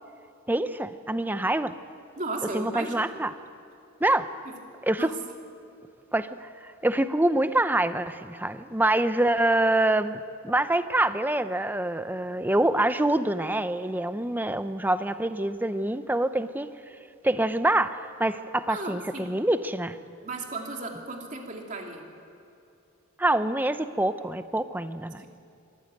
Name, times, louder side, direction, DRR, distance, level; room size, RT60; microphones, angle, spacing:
voice 1, 0.5-1.7 2.5-3.3 4.0-4.3 4.9-5.1 6.1-16.7 17.2-20.0 23.2-25.2, right 1 dB, 10° right, 11 dB, 0.6 m, -25 dB
voice 2, 2.2-3.1 4.4-4.6 4.9-5.1 18.7-19.3 20.2-22.0, right 2 dB, 35° right, 1 dB, 2.7 m, -35 dB
24.5 x 15.0 x 9.0 m, 2.7 s
head